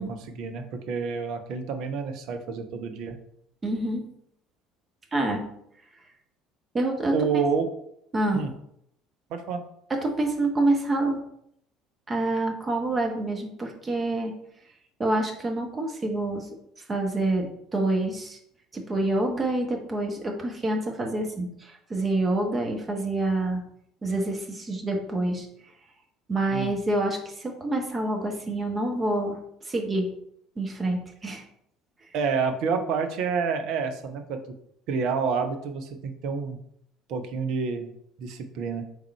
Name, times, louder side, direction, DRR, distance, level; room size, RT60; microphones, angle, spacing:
voice 1, 0.0-3.2 7.1-7.7 8.3-8.5 9.3-9.6 26.5-26.8 32.1-34.4 34.9-36.6 37.1-37.9 38.2-38.8, right 5 dB, 55° right, 6 dB, 0.6 m, -28 dB
voice 2, 3.6-4.0 5.1-5.4 6.7-7.4 8.1-8.5 9.9-11.2 12.1-14.3 15.0-16.5 16.9-18.4 18.7-23.6 24.0-25.5 26.3-29.4 29.6-30.1 30.6-31.4, right 2 dB, 25° right, 2 dB, 1.0 m, -27 dB
3.6 x 3.4 x 4.2 m, 0.72 s
figure-of-eight pair, 60°, 0 cm